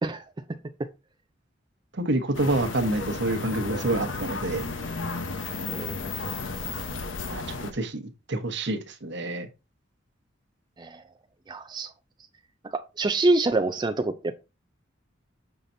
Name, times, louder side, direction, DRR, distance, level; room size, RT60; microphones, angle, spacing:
voice 1, 2.0-4.7 7.3-8.0 8.3-9.5, right 2 dB, 65° right, 1.1 m, -27 dB
sound 1, 2.3-7.7, left 3 dB, 75° left, 1.0 m, -33 dB
voice 2, 5.7-6.3 10.8-11.0 11.5-11.9 12.6-14.3, right 2 dB, 25° right, 0.4 m, -26 dB
6.7 x 5.7 x 2.7 m
head